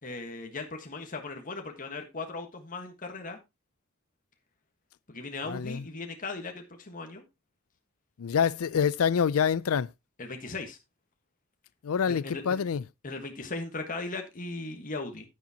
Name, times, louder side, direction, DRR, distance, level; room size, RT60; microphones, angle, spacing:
voice 1, 0.0-3.4 5.1-7.2 10.2-10.8 12.1-12.6 13.0-15.3, left 3 dB, 40° left, 1.5 m, -38 dB
voice 2, 5.5-5.8 8.2-9.9 11.8-12.8, left 7 dB, 75° left, 0.4 m, -26 dB
10.0 x 9.2 x 2.9 m
head